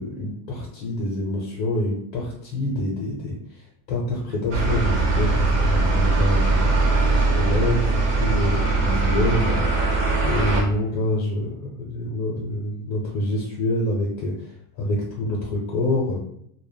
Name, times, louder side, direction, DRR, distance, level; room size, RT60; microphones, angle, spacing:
voice 1, 0.0-10.0 10.2-16.2, left 1 dB, 40° left, -3 dB, 0.5 m, -26 dB
sound 1, 4.5-10.6, right 3 dB, 60° right, 0.8 m, -21 dB
2.1 x 2.0 x 3.3 m, 0.71 s
supercardioid pair, 165°, 43 cm